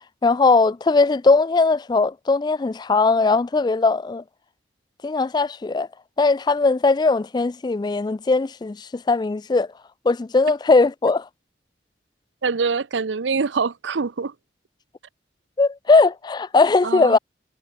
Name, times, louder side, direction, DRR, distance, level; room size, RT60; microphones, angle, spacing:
voice 1, 0.2-4.2 5.0-5.9 6.2-9.7 10.1-11.3 15.6-17.2, left 3 dB, 25° left, 0.3 m, -19 dB
voice 2, 12.4-14.3 16.8-17.2, right 5 dB, 85° right, 0.7 m, -24 dB
head